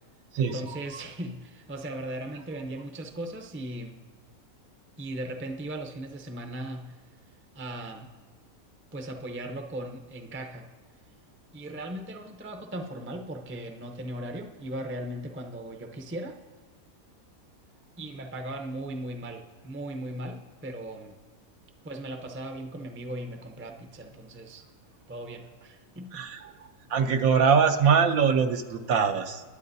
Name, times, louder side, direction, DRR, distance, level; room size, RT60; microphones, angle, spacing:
voice 1, 0.4-4.0 5.0-7.0 7.5-8.1 8.9-10.7 11.5-16.4 18.0-21.2 21.8-24.6 25.1-26.2, right 1 dB, 15° right, 4 dB, 0.4 m, -38 dB
voice 2, 26.9-29.4, right 6 dB, 75° right, 7 dB, 1.2 m, -22 dB
22.0 x 8.3 x 2.7 m, 1.5 s
omnidirectional pair, 1.5 m